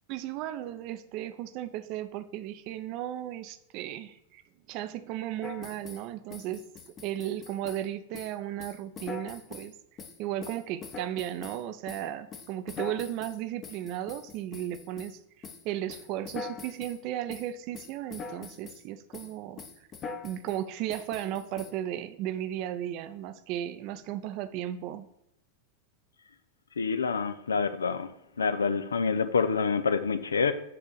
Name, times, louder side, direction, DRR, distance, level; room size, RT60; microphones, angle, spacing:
voice 1, 0.1-4.4 4.7-6.7 7.0-9.7 10.2-19.7 20.2-25.1, right 12 dB, 40° right, 12 dB, 0.5 m, -35 dB
sound 1, 5.4-6.0 6.3-7.9 8.1-8.3 8.6-9.7 10.0-11.6 11.9-15.1 15.4-15.6 15.9-17.0 17.3-17.5 17.7-18.8 19.1-19.3 19.6-20.6 20.9-21.7, left 5 dB, 30° left, 0.9 m, -43 dB
voice 2, 26.8-28.1 28.4-30.5, left 5 dB, 70° left, 12 dB, 0.5 m, -27 dB
7.8 x 3.6 x 6.5 m, 0.81 s
figure-of-eight pair, 90°, 0 cm